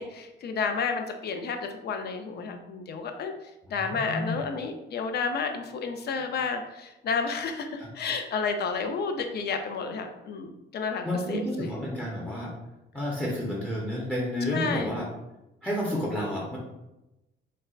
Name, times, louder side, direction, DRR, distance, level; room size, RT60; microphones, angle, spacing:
voice 1, 0.0-3.3 3.7-11.7 14.5-15.0, left 5 dB, 55° left, 5 dB, 0.5 m, -31 dB
voice 2, 3.7-4.4 7.8-7.9 11.0-12.5 12.9-15.1 15.6-16.6, left 1 dB, 5° left, -4 dB, 0.7 m, -30 dB
4.3 x 2.1 x 2.4 m, 0.96 s
cardioid pair, 90°, 20 cm